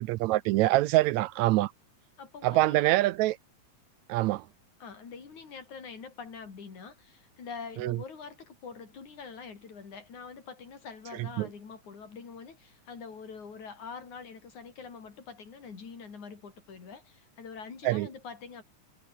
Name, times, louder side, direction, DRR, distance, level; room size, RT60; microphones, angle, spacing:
voice 1, 0.0-1.7 2.4-3.4 4.1-4.4 7.8-8.0 11.4-11.5 17.8-18.1, right 17 dB, 80° right, 1.8 m, -25 dB
voice 2, 2.2-3.0 4.8-18.6, left 5 dB, 75° left, 5.6 m, -45 dB
omnidirectional pair, 3.4 m